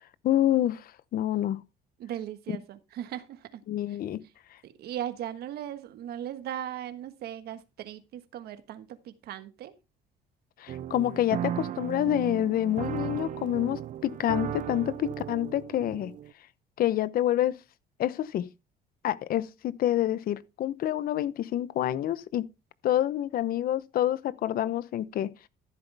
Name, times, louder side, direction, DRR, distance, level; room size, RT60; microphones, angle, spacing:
voice 1, 0.2-1.6 3.7-4.2 10.6-16.1 16.8-17.6 18.0-18.5 19.0-22.5 22.8-25.3, left 12 dB, 60° left, 0.8 m, -27 dB
voice 2, 2.0-3.6 4.6-9.7, right 11 dB, 70° right, 1.4 m, -38 dB
sound 1, 10.7-16.3, right 11 dB, 50° right, 0.5 m, -36 dB
14.0 x 8.0 x 3.4 m
cardioid pair, 110°, 17 cm